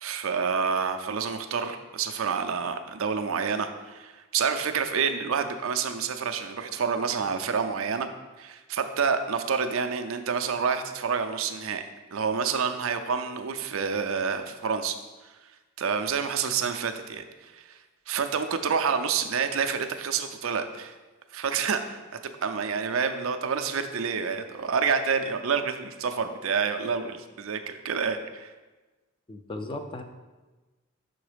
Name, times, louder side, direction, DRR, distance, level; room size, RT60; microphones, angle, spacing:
voice 1, 0.0-8.1 8.4-11.8 12.1-15.0 15.8-17.8 18.1-20.9 21.3-22.0 22.4-28.5, right 6 dB, 70° right, 7 dB, 0.5 m, -28 dB
voice 2, 29.3-30.0, left 2 dB, 25° left, 6 dB, 0.4 m, -36 dB
6.3 x 3.9 x 5.0 m, 1.2 s
head